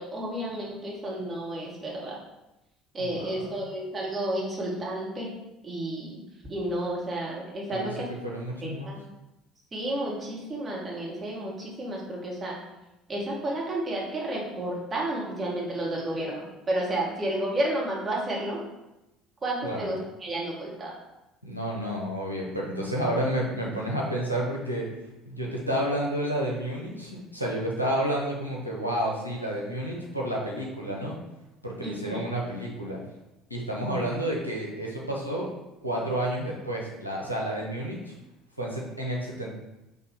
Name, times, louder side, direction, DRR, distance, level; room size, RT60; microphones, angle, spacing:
voice 1, 0.0-2.2 2.9-5.3 5.6-6.2 6.5-8.1 8.6-9.0 9.7-12.6 13.1-18.6 19.4-20.9 31.8-32.2, right 1 dB, 25° right, -4 dB, 1.4 m, -31 dB
voice 2, 3.0-3.5 7.7-7.9 8.2-8.9 19.6-19.9 21.4-24.9 25.2-31.2 31.6-33.0 33.5-35.5 35.8-38.1 38.6-39.5, right 1 dB, 90° left, -3 dB, 0.7 m, -30 dB
4.4 x 2.7 x 4.4 m, 0.97 s
figure-of-eight pair, 60°, 0 cm